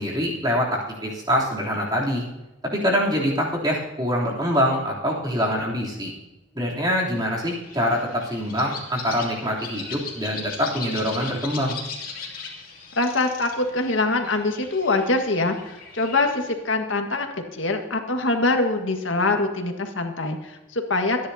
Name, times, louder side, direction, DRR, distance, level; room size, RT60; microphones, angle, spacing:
voice 1, 0.0-2.2 2.7-6.1 6.5-11.8, equal, 20° right, -3 dB, 3.3 m, -24 dB
sound 1, 7.6-16.5, left 5 dB, 45° left, 2.8 m, -39 dB
voice 2, 13.0-21.2, left 2 dB, 80° left, 4 dB, 1.7 m, -24 dB
26.0 x 10.5 x 2.8 m, 1.0 s
head